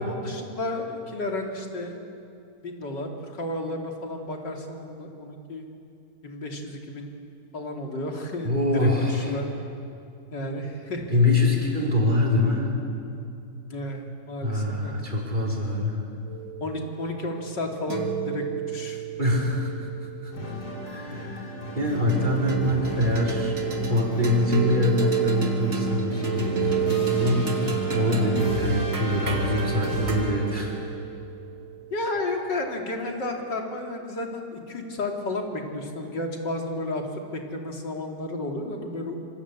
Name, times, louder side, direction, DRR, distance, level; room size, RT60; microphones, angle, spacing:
voice 1, 0.0-2.0 2.6-5.6 6.2-7.2 7.5-9.5 10.3-11.2 13.7-15.0 16.6-19.0 31.9-39.2, left 2 dB, 90° left, 2 dB, 3.6 m, -32 dB
voice 2, 8.4-9.3 11.1-12.7 14.4-16.0 19.2-19.7 20.2-20.3 20.8-23.5 23.8-27.5 27.9-30.7, left 1 dB, 25° right, -2 dB, 5.0 m, -24 dB
sound 1, 16.3-20.9 22.1-32.6, right 6 dB, 50° right, 2.9 m, -30 dB
sound 2, 20.3-30.7, left 2 dB, 65° left, 4.1 m, -34 dB
26.0 x 25.5 x 8.5 m, 2.6 s
omnidirectional pair, 1.8 m